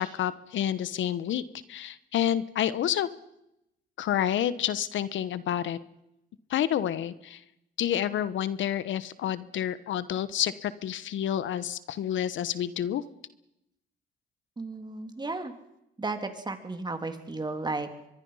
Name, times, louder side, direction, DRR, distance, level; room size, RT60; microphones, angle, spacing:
voice 1, 0.0-1.4 1.7-3.1 4.0-5.8 6.5-7.4 7.8-13.0, left 10 dB, 75° left, 15 dB, 1.1 m, -29 dB
voice 2, 14.6-15.5 16.0-18.1, right 3 dB, 20° right, 7 dB, 3.0 m, -34 dB
24.0 x 22.0 x 5.7 m, 0.84 s
cardioid pair, 90°, 20 cm